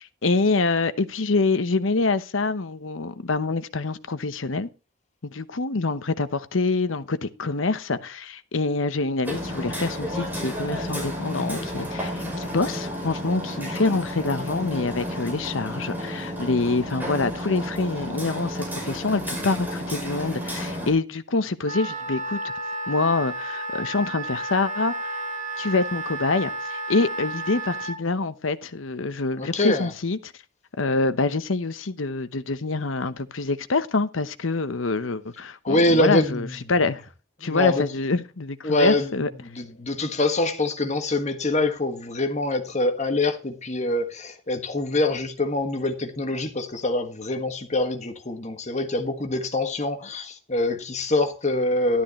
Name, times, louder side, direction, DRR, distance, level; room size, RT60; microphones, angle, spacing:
voice 1, 0.0-4.7 5.2-22.5 22.9-25.2 25.6-30.3 30.8-37.0 37.4-39.3, left 3 dB, 85° left, 0.9 m, -26 dB
Hammer, 9.2-20.9, equal, 10° right, 5.4 m, -31 dB
Wind instrument woodwind instrument, 21.6-28.0, right 2 dB, 40° right, 1.4 m, -32 dB
voice 2, 29.4-29.9 35.6-36.6 37.4-37.9 38.6-39.1 39.4-52.0, left 2 dB, 35° left, 1.6 m, -25 dB
12.5 x 11.5 x 3.0 m
head